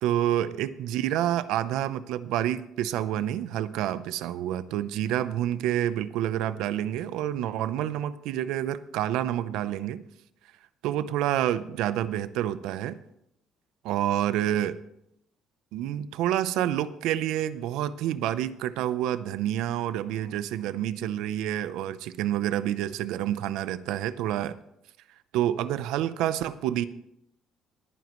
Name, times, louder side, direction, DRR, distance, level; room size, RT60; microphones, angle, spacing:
voice 1, 0.0-10.0 10.8-13.0 13.8-14.8 15.7-24.6 25.3-26.9, right 12 dB, 85° right, 15 dB, 0.6 m, -28 dB
20.5 x 9.5 x 3.1 m, 0.77 s
cardioid pair, 165°, 0 cm